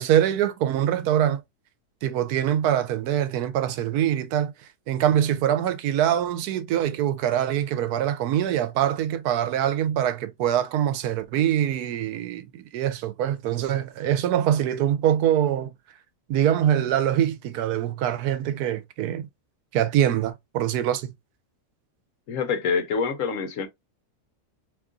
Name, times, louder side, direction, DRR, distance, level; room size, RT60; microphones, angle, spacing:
voice 1, 0.0-1.4 2.0-4.5 4.9-15.7 16.3-19.3 19.7-21.1, right 10 dB, 85° right, 1.1 m, -24 dB
voice 2, 22.3-23.7, left 5 dB, 65° left, 1.0 m, -26 dB
2.9 x 2.4 x 3.6 m
omnidirectional pair, 1.6 m